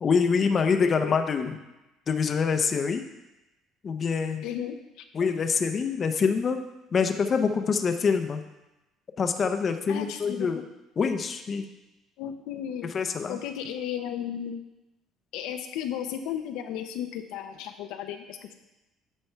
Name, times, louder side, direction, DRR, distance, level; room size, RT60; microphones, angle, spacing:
voice 1, 0.0-1.6 2.1-3.0 3.8-4.4 5.1-6.6 6.9-8.4 9.2-10.6 11.0-11.7 12.9-13.4, left 5 dB, 35° left, 7 dB, 0.6 m, -25 dB
voice 2, 0.7-1.2 4.4-5.0 9.9-10.5 12.2-12.9 13.3-14.6 15.3-18.5, left 9 dB, 85° left, 6 dB, 0.7 m, -34 dB
8.9 x 5.4 x 4.5 m, 0.98 s
cardioid pair, 125°, 0 cm